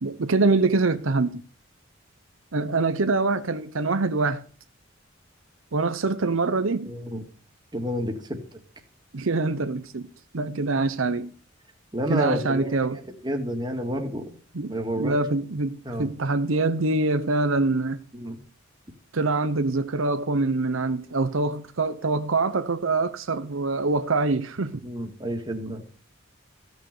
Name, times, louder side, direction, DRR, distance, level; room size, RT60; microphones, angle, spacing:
voice 1, 0.0-1.4 2.5-4.4 5.7-6.9 9.1-10.1 10.3-11.3 12.1-13.0 14.5-18.0 19.1-24.8, right 3 dB, 75° right, 0.8 m, -24 dB
voice 2, 6.8-7.2 7.7-8.6 11.9-14.4 14.7-15.2 15.8-16.1 18.1-18.4 24.8-25.8, equal, 20° right, 2.0 m, -30 dB
15.5 x 6.3 x 6.7 m
head